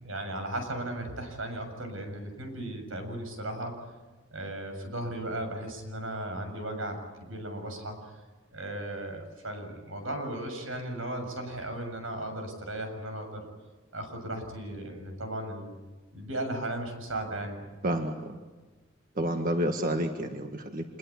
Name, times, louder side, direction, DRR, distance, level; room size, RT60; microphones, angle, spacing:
voice 1, 0.0-3.7 4.3-8.2 8.5-13.5 13.9-15.8 16.1-17.7, right 1 dB, 90° right, 6 dB, 7.0 m, -36 dB
voice 2, 17.8-18.4 19.1-21.0, equal, 45° right, 4 dB, 1.7 m, -30 dB
26.5 x 21.5 x 8.6 m, 1.3 s
head